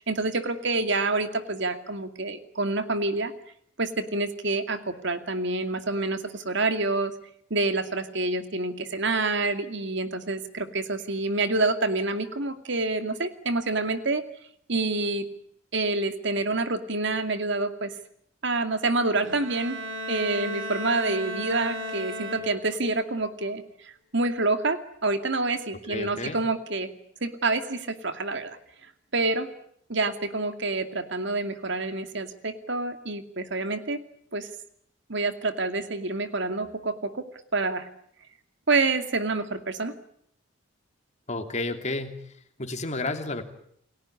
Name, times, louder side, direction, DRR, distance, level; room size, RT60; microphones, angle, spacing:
voice 1, 0.0-3.3 3.8-7.1 7.5-14.2 14.7-15.2 15.7-17.9 18.4-19.8 20.1-26.9 27.2-28.6 29.1-29.5 29.9-34.0 34.3-34.5 35.1-37.3 37.5-37.9 38.7-39.9, right 3 dB, 65° right, 9 dB, 2.5 m, -27 dB
Bowed string instrument, 19.2-22.9, equal, 90° right, 4.7 m, -35 dB
voice 2, 25.9-26.4 41.3-42.3 42.6-43.4, left 2 dB, 40° left, 6 dB, 3.0 m, -31 dB
29.0 x 18.0 x 9.8 m, 0.68 s
head